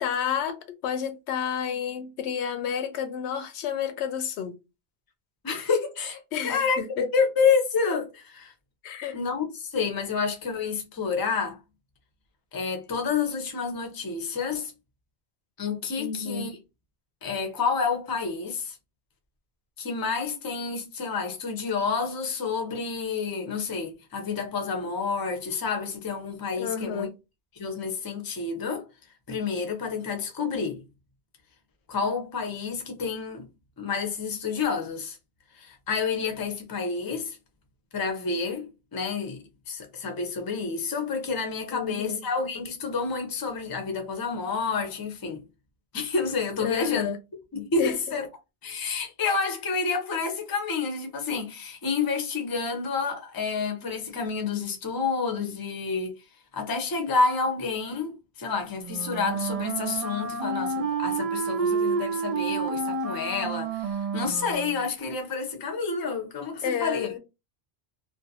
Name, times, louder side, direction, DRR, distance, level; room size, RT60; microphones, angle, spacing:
voice 1, 0.0-4.5 6.3-7.1 8.8-9.2 16.0-16.5 26.6-27.1 41.7-42.2 46.6-47.2 47.8-48.0 66.6-67.2, left 8 dB, 85° left, 0.8 m, -30 dB
voice 2, 5.4-6.8 7.1-8.5 9.1-11.6 12.5-14.7 15.6-16.6 17.2-18.8 19.8-27.1 27.5-28.8 29.3-30.8 31.9-33.5 33.8-35.2 35.5-37.4 37.9-45.4 45.9-47.1 47.5-48.3 48.6-56.1 56.5-67.1, left 5 dB, 30° left, 0.5 m, -29 dB
Wind instrument woodwind instrument, 58.8-64.9, right 4 dB, 55° right, 0.4 m, -29 dB
2.5 x 2.2 x 2.7 m
omnidirectional pair, 1.1 m